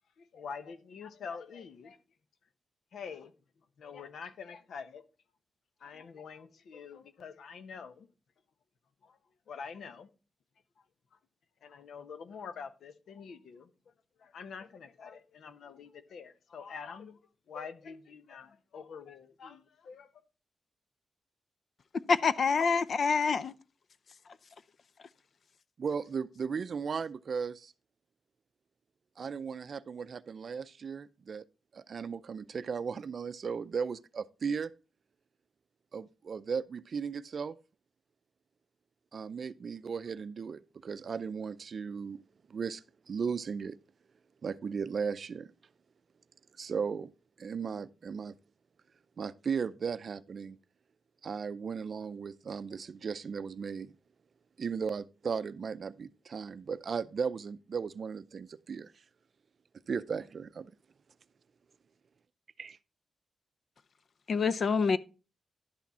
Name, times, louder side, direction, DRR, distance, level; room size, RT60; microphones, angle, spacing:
voice 1, 0.2-2.0 2.9-3.3 3.8-5.0 5.8-8.1 9.0-9.2 9.5-10.1 11.6-13.7 14.2-17.2 17.5-20.1, left 6 dB, 75° left, 0.9 m, -46 dB
voice 2, 22.1-23.5 64.3-65.0, left 5 dB, 50° left, 0.5 m, -26 dB
voice 3, 25.8-27.7 29.2-31.4 31.7-34.7 35.9-37.6 39.1-42.2 42.5-43.8 44.4-45.5 46.6-47.1 47.4-48.3 49.2-50.6 51.2-53.9 54.6-58.9 59.9-60.7 62.6-62.8, right 6 dB, 50° right, 0.5 m, -36 dB
11.5 x 5.9 x 4.2 m
wide cardioid pair, 135°, 0 cm